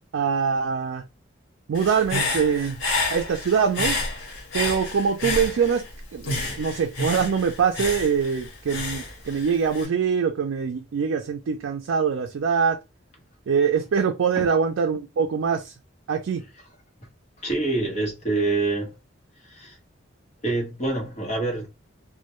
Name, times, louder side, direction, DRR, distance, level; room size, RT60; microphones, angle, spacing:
voice 1, 0.1-1.0 1.7-2.8 3.1-4.0 4.5-5.8 6.1-6.3 6.6-12.8 13.5-15.7 16.1-16.4, right 6 dB, 80° right, 0.4 m, -23 dB
Human voice / Breathing, 1.7-5.9 6.2-9.9, left 2 dB, 80° left, 1.0 m, -29 dB
voice 2, 17.4-18.9 19.5-19.8 20.4-21.7, right 3 dB, 35° left, 0.9 m, -26 dB
2.2 x 2.1 x 2.9 m
head